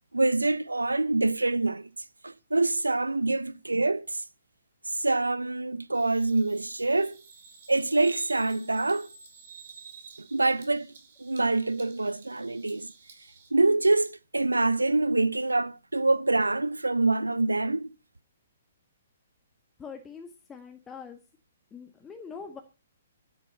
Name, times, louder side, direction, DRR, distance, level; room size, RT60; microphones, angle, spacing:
voice 1, 0.1-1.9 2.2-4.2 4.9-7.2 7.7-9.1 10.2-10.9 11.2-12.9 13.5-17.9, right 2 dB, 80° right, 0.6 m, -25 dB
Bird vocalization bird call bird song, 5.9-13.5, right 6 dB, 55° right, 5.2 m, -51 dB
voice 2, 19.8-21.2 21.7-22.6, left 5 dB, 15° left, 1.6 m, -43 dB
12.0 x 10.5 x 5.4 m
figure-of-eight pair, 125°, 0 cm